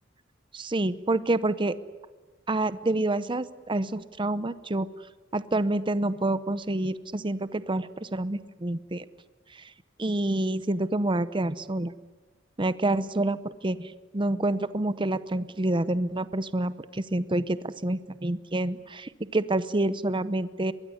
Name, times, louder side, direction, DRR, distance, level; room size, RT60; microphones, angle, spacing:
voice 1, 0.5-1.8 2.5-4.9 5.3-9.0 10.0-11.9 12.6-20.7, right 2 dB, 25° right, 14 dB, 0.8 m, -28 dB
23.5 x 20.5 x 9.7 m, 1.3 s
head